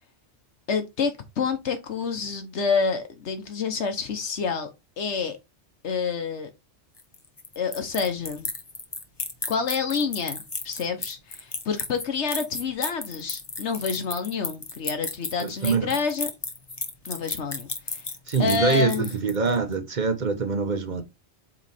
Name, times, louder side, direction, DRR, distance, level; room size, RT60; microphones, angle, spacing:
voice 1, 0.7-4.7 5.0-5.4 5.8-6.5 7.6-8.5 9.5-16.3 17.0-18.0 18.4-19.1, left 5 dB, 75° left, 1.2 m, -28 dB
sound 1, 7.0-19.6, left 3 dB, 25° left, 0.9 m, -34 dB
voice 2, 15.4-15.9 18.3-21.0, right 5 dB, 40° right, 1.1 m, -24 dB
8.0 x 3.1 x 4.1 m
omnidirectional pair, 1.2 m